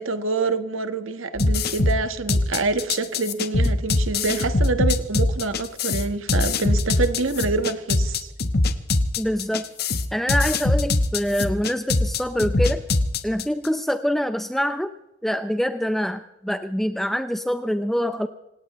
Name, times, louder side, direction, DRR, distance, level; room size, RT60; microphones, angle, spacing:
voice 1, 0.0-8.3, right 3 dB, 85° right, 10 dB, 1.4 m, -26 dB
sound 1, 1.3-13.7, left 2 dB, 50° left, 1.1 m, -22 dB
voice 2, 9.2-9.7 10.1-12.8 13.2-14.9 15.2-18.3, equal, ahead, 9 dB, 0.5 m, -25 dB
26.5 x 18.0 x 3.1 m, 0.95 s
head